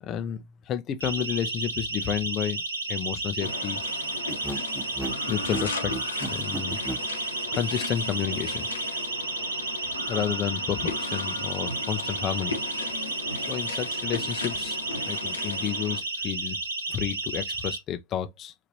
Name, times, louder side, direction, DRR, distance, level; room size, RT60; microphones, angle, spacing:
voice 1, 0.0-2.6 2.9-3.8 5.3-5.9 6.3-6.8 7.5-8.7 10.1-12.5 13.3-14.8 15.1-16.6 16.9-18.5, left 9 dB, 30° left, 0.7 m, -31 dB
Siren, 1.0-17.8, right 2 dB, 70° right, 1.0 m, -32 dB
sound 1, 3.4-16.0, left 3 dB, 75° left, 1.3 m, -36 dB
sound 2, 4.3-7.1, right 2 dB, 5° right, 0.7 m, -35 dB
5.1 x 2.9 x 2.8 m
figure-of-eight pair, 90°, 0 cm